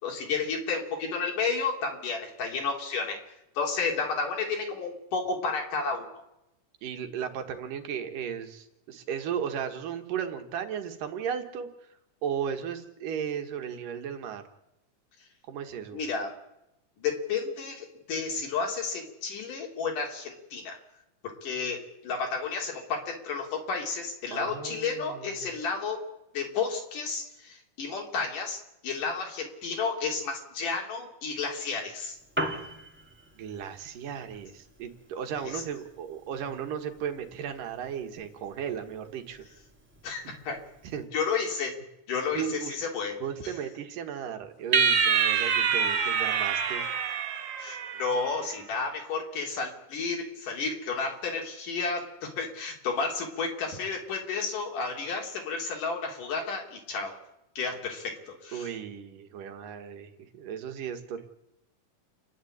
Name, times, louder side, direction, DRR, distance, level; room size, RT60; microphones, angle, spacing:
voice 1, 0.0-3.2 3.6-6.0 15.9-16.3 17.0-20.7 21.4-26.0 26.3-32.2 35.5-35.6 40.0-40.6 41.1-41.7 42.1-43.1 47.6-57.1 57.6-58.7, left 4 dB, 75° left, 1 dB, 4.7 m, -32 dB
voice 2, 6.8-11.7 12.2-14.4 15.5-16.0 24.3-25.5 33.3-39.4 40.2-40.3 40.8-41.1 42.3-42.8 43.2-46.8 58.5-61.2, right 8 dB, 85° right, 6 dB, 3.2 m, -35 dB
Piano, 32.1-41.1, equal, 5° right, 1.3 m, -42 dB
sound 1, 44.7-48.3, right 6 dB, 60° right, 1.2 m, -26 dB
29.0 x 11.0 x 8.6 m, 0.88 s
omnidirectional pair, 3.7 m